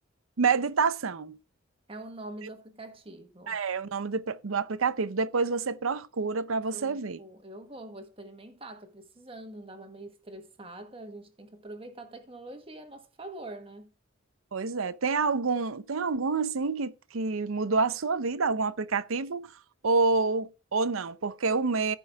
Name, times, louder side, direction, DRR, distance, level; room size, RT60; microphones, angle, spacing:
voice 1, 0.4-1.4 3.5-7.2 14.5-19.5 19.8-21.9, right 4 dB, 80° right, 0.6 m, -28 dB
voice 2, 1.9-3.6 6.7-13.9, right 1 dB, 25° right, 1.4 m, -44 dB
15.0 x 5.4 x 3.5 m
head